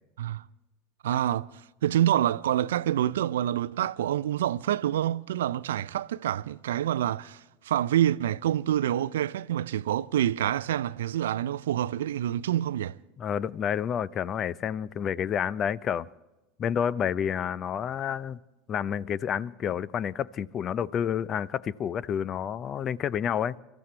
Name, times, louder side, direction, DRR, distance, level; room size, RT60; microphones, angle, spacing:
voice 1, 1.0-1.5 1.8-13.0, right 11 dB, 75° right, 0.4 m, -27 dB
voice 2, 13.2-16.1 16.6-18.4 18.7-23.6, left 8 dB, 40° left, 0.6 m, -29 dB
28.5 x 14.0 x 3.3 m
figure-of-eight pair, 75°, 0 cm